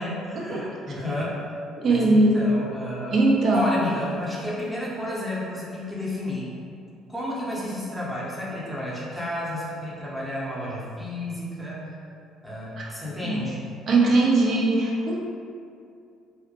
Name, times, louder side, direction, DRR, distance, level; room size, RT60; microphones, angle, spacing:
voice 1, 0.0-1.4 1.9-3.2 3.5-6.5 7.1-11.8 12.4-13.6, left 1 dB, 5° right, -7 dB, 0.7 m, -31 dB
voice 2, 1.8-2.5 3.1-3.7 12.8-12.9 13.3-13.4 13.9-15.2, right 2 dB, 50° right, -3 dB, 0.4 m, -20 dB
2.2 x 2.0 x 2.7 m, 2.4 s
hypercardioid pair, 50°, 0 cm